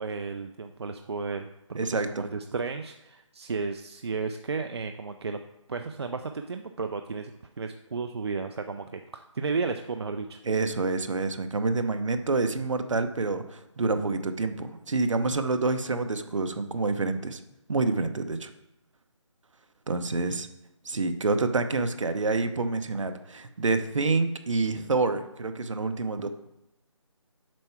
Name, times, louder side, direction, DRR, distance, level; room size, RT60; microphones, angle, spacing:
voice 1, 0.0-5.4 5.7-7.3 7.6-10.4, right 4 dB, 55° right, 7 dB, 0.4 m, -33 dB
voice 2, 1.8-2.2 10.4-17.4 17.7-18.5 19.9-20.5 20.8-26.3, right 3 dB, 70° right, 8 dB, 0.8 m, -27 dB
7.5 x 5.6 x 4.5 m, 0.89 s
figure-of-eight pair, 170°, 17 cm